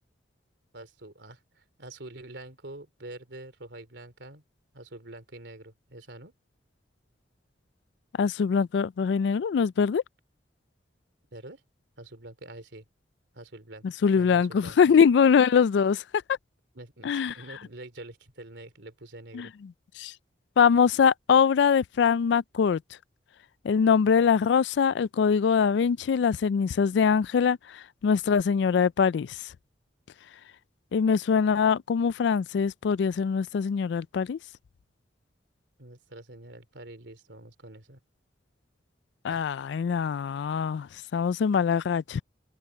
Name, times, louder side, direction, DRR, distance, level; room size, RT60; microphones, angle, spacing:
voice 1, 0.7-4.4 4.7-6.3 11.3-11.6 12.0-12.8 13.3-13.8 14.1-14.8 16.7-19.5 35.8-38.0 39.3-39.5, right 2 dB, 75° right, 3.1 m, -45 dB
voice 2, 8.2-10.0 14.0-16.0 17.0-17.3 19.3-19.5 20.0-20.1 20.6-22.8 23.6-29.4 30.9-34.4 39.2-42.2, left 6 dB, 70° left, 0.3 m, -23 dB
head